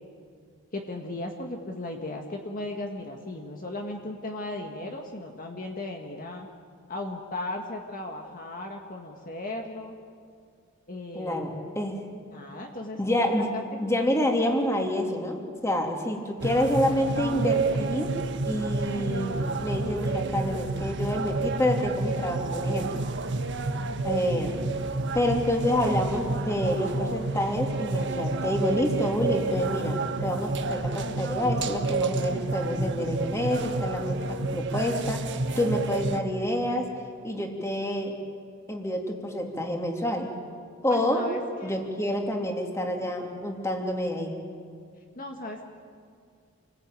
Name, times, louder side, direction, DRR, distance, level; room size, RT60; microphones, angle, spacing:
voice 1, 0.7-6.5 6.9-9.9 10.9-11.5 12.3-13.0 13.5-13.6 40.9-41.8 45.1-45.6, left 1 dB, 40° left, 2 dB, 1.8 m, -36 dB
voice 2, 11.1-12.0 13.0-13.5 13.8-18.2 18.4-23.0 24.0-24.6 25.1-36.9 37.2-38.2 38.7-40.3 40.8-41.3 41.6-44.4, left 1 dB, 15° left, 2 dB, 2.8 m, -28 dB
sound 1, 16.4-36.2, right 3 dB, 55° right, 1.4 m, -29 dB
29.0 x 21.0 x 9.2 m, 2.2 s
head